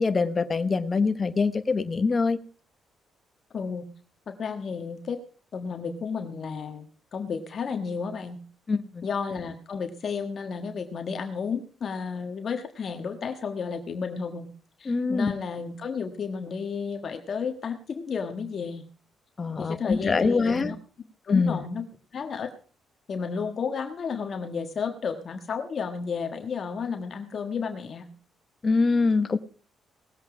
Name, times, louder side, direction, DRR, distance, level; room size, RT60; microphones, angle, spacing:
voice 1, 0.0-2.4 8.7-9.0 14.9-15.3 19.4-20.7 21.3-21.6 28.6-29.4, left 4 dB, 35° left, 11 dB, 1.0 m, -24 dB
voice 2, 3.5-3.9 4.3-5.2 5.5-8.4 9.0-14.5 14.8-18.8 19.6-20.8 21.2-21.9 22.1-22.5 23.1-28.1, left 5 dB, 50° left, 6 dB, 1.4 m, -32 dB
19.0 x 7.9 x 4.9 m, 0.41 s
cardioid pair, 90°, 0 cm